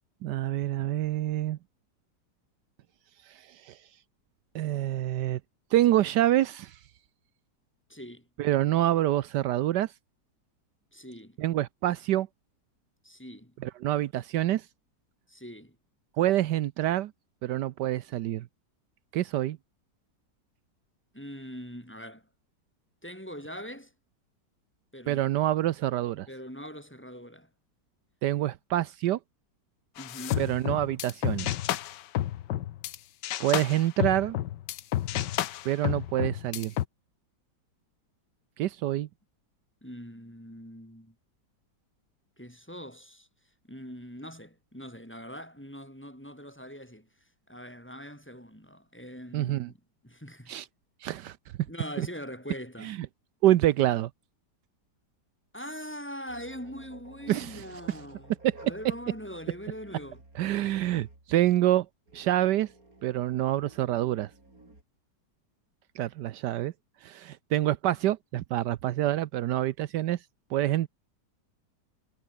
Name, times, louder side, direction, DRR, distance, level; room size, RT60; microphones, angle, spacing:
voice 1, 0.2-1.6 3.3-3.8 4.5-5.4 5.7-6.8 8.4-9.9 11.4-12.3 13.6-14.7 16.2-17.1 17.4-18.4 19.1-19.6 25.1-26.3 28.2-29.2 30.4-31.5 33.4-34.4 35.6-36.7 38.6-39.1 49.3-49.7 50.5-50.6 51.0-51.4 52.0-52.1 52.8-53.0 53.4-54.1 57.3-57.6 58.4-58.5 60.3-61.9 62.1-62.7 63.0-64.3 66.0-66.7 67.0-70.2 70.5-70.9, right 13 dB, 80° right, 1.3 m, -26 dB
voice 2, 7.9-8.3 10.9-11.4 13.0-13.5 15.3-15.8 21.1-22.2 23.0-23.9 24.9-25.2 26.3-27.5 30.0-30.5 39.8-41.2 42.4-43.3 43.7-47.1 47.5-49.8 50.0-50.5 51.7-52.9 55.5-58.3 58.6-60.2, equal, 5° left, 7.2 m, -42 dB
sound 1, 30.0-33.0 33.2-36.9, left 13 dB, 80° left, 1.4 m, -31 dB
sound 2, 56.3-61.4 62.1-64.8, right 2 dB, 55° right, 6.5 m, -53 dB
omnidirectional pair, 1.9 m